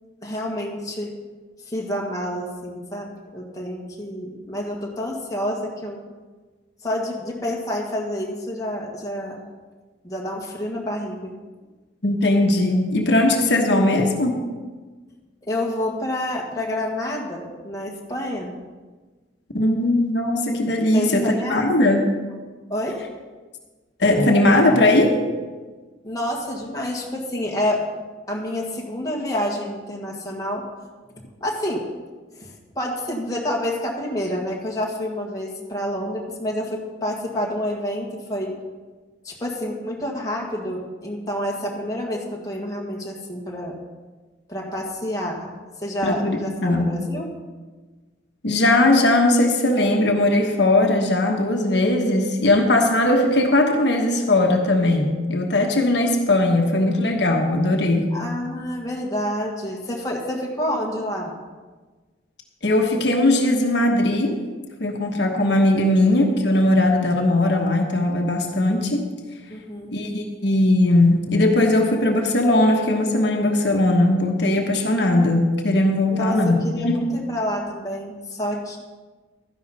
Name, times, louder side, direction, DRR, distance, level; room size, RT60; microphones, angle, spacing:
voice 1, 0.2-1.1 1.7-6.0 6.8-9.4 10.0-11.3 15.5-18.5 20.9-21.9 22.7-23.0 26.0-27.8 28.3-30.7 31.4-31.9 32.4-38.5 39.2-43.7 44.5-45.5 45.8-47.3 58.1-61.4 69.5-69.9 76.1-78.8, left 1 dB, 20° left, -2 dB, 1.6 m, -28 dB
voice 2, 12.0-14.4 19.5-22.1 24.0-25.2 46.0-47.0 48.4-58.1 62.6-64.4 64.8-69.0 69.9-76.6 76.8-77.0, left 1 dB, 65° left, 2 dB, 1.2 m, -19 dB
12.5 x 10.5 x 4.1 m, 1.3 s
head